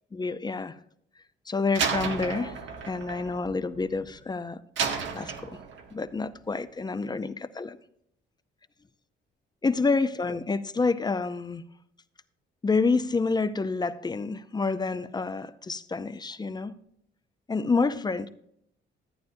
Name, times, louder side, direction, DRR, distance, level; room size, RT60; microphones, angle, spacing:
voice 1, 0.1-0.7 1.5-2.6 2.8-4.6 5.1-5.6 5.9-7.8 9.6-11.6 12.6-16.8 17.5-18.3, left 4 dB, 20° left, 0.5 m, -28 dB
Slam, 1.7-4.2 4.8-6.0, right 6 dB, 70° right, 1.2 m, -32 dB
14.0 x 9.0 x 2.6 m
cardioid pair, 90°, 20 cm